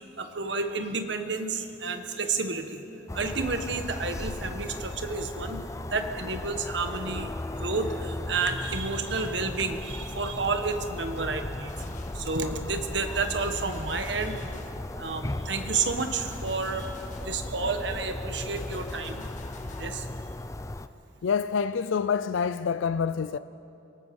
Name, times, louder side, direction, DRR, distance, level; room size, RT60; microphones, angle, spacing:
voice 1, 0.2-2.8 3.1-11.7 12.1-14.5 14.9-16.9 17.2-19.2 19.7-20.1, right 4 dB, 65° right, 1.5 m, -31 dB
sound 1, 3.1-20.9, left 1 dB, 15° left, 0.4 m, -36 dB
Gunshot gunfire, 11.7-12.3 13.4-14.9 16.0-17.4 18.6-20.0, left 3 dB, 40° left, 1.7 m, -49 dB
voice 2, 21.2-23.4, left 6 dB, 80° left, 0.4 m, -27 dB
27.5 x 18.0 x 5.4 m
head